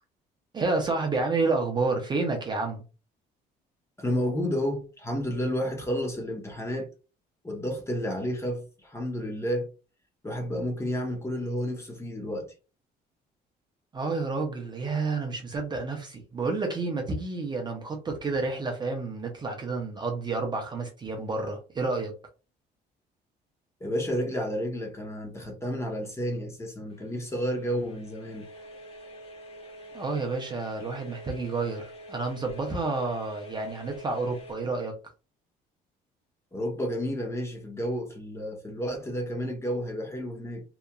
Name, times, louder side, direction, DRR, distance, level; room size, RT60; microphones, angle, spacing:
voice 1, 0.5-2.8 13.9-22.1 29.9-35.0, right 3 dB, 25° right, 0.5 m, -30 dB
voice 2, 4.0-6.9 7.4-9.7 10.2-12.5 23.8-28.5 36.5-40.6, equal, 15° left, 0.8 m, -31 dB
sound 1, 26.9-34.6, right 1 dB, 35° left, 1.3 m, -47 dB
2.9 x 2.3 x 2.2 m
cardioid pair, 110°, 17 cm